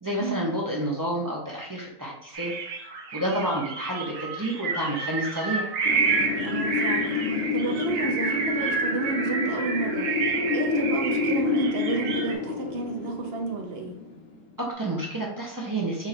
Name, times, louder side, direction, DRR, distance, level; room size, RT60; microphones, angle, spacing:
voice 1, 0.0-2.5 3.1-5.7 14.6-16.1, right 1 dB, 20° right, -3 dB, 0.5 m, -29 dB
sound 1, 2.3-12.3, right 4 dB, 80° right, 1.3 m, -29 dB
Wind, 5.9-14.6, left 4 dB, 75° left, 1.3 m, -29 dB
voice 2, 6.4-7.2 7.5-10.1 10.5-14.0, right 4 dB, 55° right, 2 dB, 0.7 m, -31 dB
4.6 x 2.6 x 4.1 m, 0.73 s
omnidirectional pair, 1.5 m